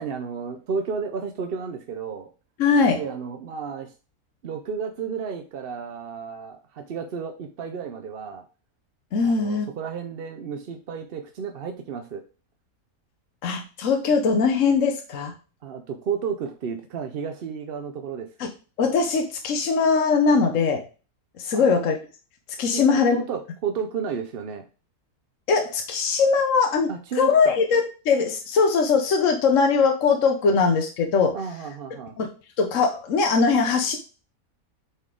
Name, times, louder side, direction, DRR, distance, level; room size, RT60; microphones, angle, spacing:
voice 1, 0.0-2.3 2.9-3.9 4.4-8.4 9.2-12.2 15.6-18.3 21.5-21.6 22.7-24.6 26.9-27.5 31.3-32.2, right 6 dB, 55° right, 6 dB, 0.7 m, -32 dB
voice 2, 2.6-3.0 9.1-9.7 13.4-15.3 18.4-18.5 18.8-20.8 21.4-22.0 22.6-23.2 25.5-26.9 27.2-31.4 32.2-32.3 32.6-34.0, left 5 dB, 65° left, 4 dB, 1.2 m, -21 dB
8.1 x 4.0 x 3.7 m, 0.35 s
omnidirectional pair, 1.5 m